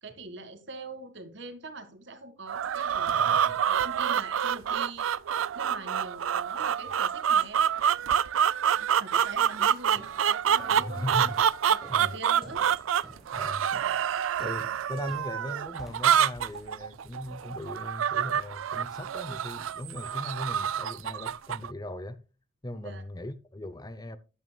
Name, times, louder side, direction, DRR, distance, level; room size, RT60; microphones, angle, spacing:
voice 1, 0.0-5.1 5.5-7.7 8.8-11.2 11.7-12.6 22.8-23.0, right 3 dB, 60° right, 1.8 m, -43 dB
sound 1, 2.5-21.7, right 8 dB, 80° right, 0.4 m, -27 dB
voice 2, 3.1-3.4 10.7-11.4 11.9-12.2 13.3-13.7 14.4-22.2 22.6-24.2, left 1 dB, 20° left, 0.6 m, -38 dB
sound 2, 9.1-9.5 10.0-17.9, equal, ahead, 1.1 m, -52 dB
12.5 x 9.2 x 2.2 m
head